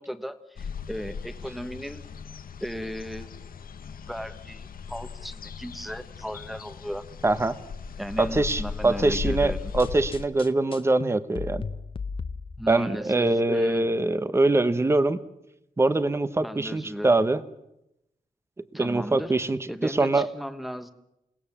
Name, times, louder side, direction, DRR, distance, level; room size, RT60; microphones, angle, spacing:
voice 1, 0.0-2.0 2.6-3.3 4.1-7.0 8.0-9.7 12.6-13.9 16.4-17.1 18.7-19.3 19.7-20.9, equal, ahead, 10 dB, 1.2 m, -36 dB
sound 1, 0.6-10.3, left 6 dB, 85° left, 1.2 m, -38 dB
voice 2, 7.2-7.6 8.2-11.7 12.7-15.2 15.8-17.4 18.7-20.3, right 2 dB, 20° right, 13 dB, 0.9 m, -23 dB
sound 2, 9.2-12.9, left 4 dB, 40° left, 0.9 m, -36 dB
28.5 x 18.5 x 7.3 m, 0.85 s
wide cardioid pair, 170°, 14 cm